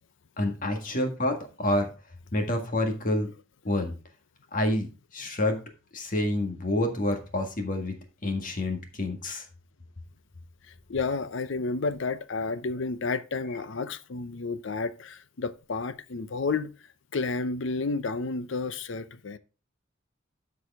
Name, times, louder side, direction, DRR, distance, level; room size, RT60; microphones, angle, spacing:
voice 1, 0.4-1.9 2.3-3.3 3.6-3.9 4.5-5.6 5.9-7.9 8.2-9.5, left 1 dB, 40° left, 1.7 m, -28 dB
voice 2, 10.7-16.7 17.1-19.4, left 4 dB, 65° left, 0.6 m, -31 dB
12.5 x 4.8 x 3.5 m
head